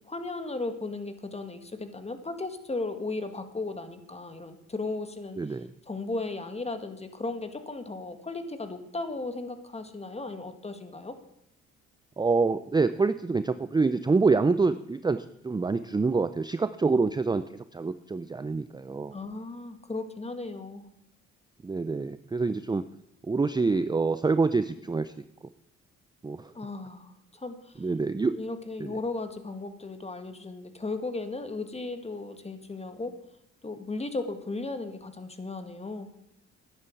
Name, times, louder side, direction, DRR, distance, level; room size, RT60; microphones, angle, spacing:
voice 1, 0.0-5.6 5.9-11.2 19.1-20.9 26.5-27.8 28.3-33.1 33.6-36.1, left 3 dB, 20° left, 9 dB, 1.8 m, -36 dB
voice 2, 5.4-5.7 12.2-19.2 21.6-22.8 23.2-25.1 26.2-26.5 27.8-28.4 28.8-28.9, right 4 dB, 15° right, 12 dB, 0.5 m, -26 dB
11.5 x 10.5 x 8.3 m, 0.76 s
cardioid pair, 90°, 30 cm